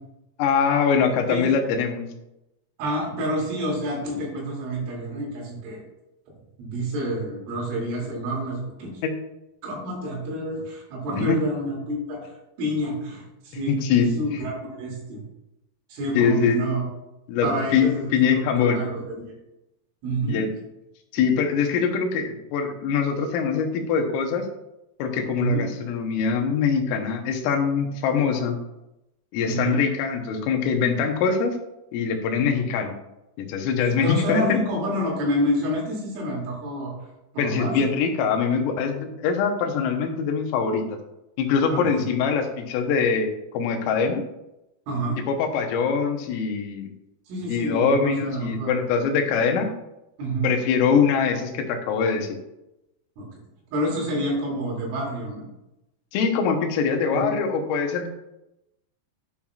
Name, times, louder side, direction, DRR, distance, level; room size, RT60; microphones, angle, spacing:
voice 1, 0.4-2.1 9.0-9.1 11.3-11.4 13.7-14.2 16.2-16.7 17.3-18.9 20.3-20.5 21.1-24.5 25.0-28.6 29.3-31.6 31.9-33.0 33.4-34.6 37.4-40.8 41.4-43.3 43.5-44.2 45.3-46.9 47.5-49.7 50.4-52.4 56.1-58.1, left 6 dB, 85° left, 4 dB, 3.6 m, -23 dB
voice 2, 2.8-5.8 6.6-8.9 9.6-12.3 12.6-15.2 15.9-16.8 17.4-19.3 20.0-20.4 25.3-25.7 29.5-29.8 34.0-36.9 37.3-37.8 41.7-42.1 44.9-45.2 47.3-48.7 50.2-50.5 53.2-53.3 53.7-55.4 57.1-57.3, right 1 dB, 75° right, -3 dB, 5.1 m, -28 dB
12.0 x 7.2 x 2.4 m, 0.90 s
omnidirectional pair, 5.7 m